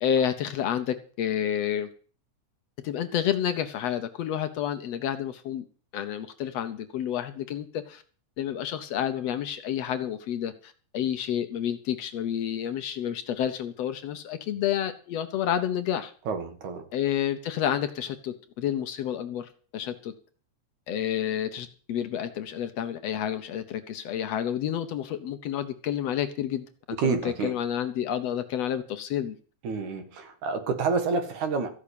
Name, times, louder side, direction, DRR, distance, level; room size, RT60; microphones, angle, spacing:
voice 1, 0.0-1.9 2.8-5.7 5.9-8.0 8.4-16.1 16.9-20.1 20.9-26.7 27.0-29.4, left 10 dB, 70° left, 9 dB, 1.8 m, -29 dB
voice 2, 16.3-16.8 27.0-27.5 29.6-31.7, right 4 dB, 75° right, 7 dB, 3.2 m, -28 dB
14.5 x 6.2 x 8.5 m, 0.42 s
omnidirectional pair, 3.4 m